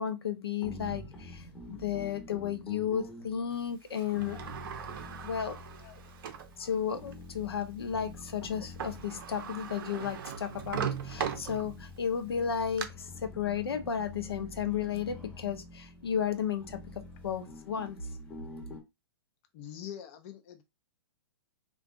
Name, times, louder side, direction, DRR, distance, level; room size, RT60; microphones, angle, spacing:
voice 1, 0.0-4.4 5.2-5.6 6.6-16.8 17.2-18.0, left 8 dB, 70° left, 0.7 m, -33 dB
sound 1, 0.6-18.8, left 1 dB, 10° left, 0.9 m, -48 dB
Sliding door, 3.9-6.5 7.1-7.2 8.5-8.6 8.8-12.0 12.4-12.8, right 8 dB, 55° right, 0.6 m, -39 dB
voice 2, 19.5-20.6, left 10 dB, 35° left, 0.5 m, -44 dB
3.3 x 2.3 x 2.4 m
figure-of-eight pair, 115°, 13 cm